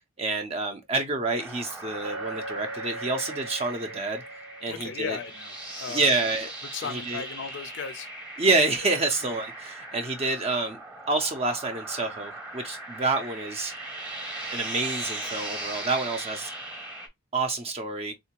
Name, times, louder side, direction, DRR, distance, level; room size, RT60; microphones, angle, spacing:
voice 1, 0.2-4.2 4.6-5.2 5.9-6.5 6.8-7.2 8.4-10.8 11.0-13.7 14.5-16.5 17.3-18.1, right 3 dB, 25° right, 0.4 m, -28 dB
sound 1, 1.4-17.1, right 2 dB, 5° right, 0.8 m, -39 dB
Chink clink, 2.0-6.3, right 2 dB, 90° right, 0.8 m, -41 dB
voice 2, 4.7-6.1 6.7-8.1 9.2-9.4, left 6 dB, 55° left, 0.4 m, -36 dB
3.6 x 2.5 x 2.8 m
head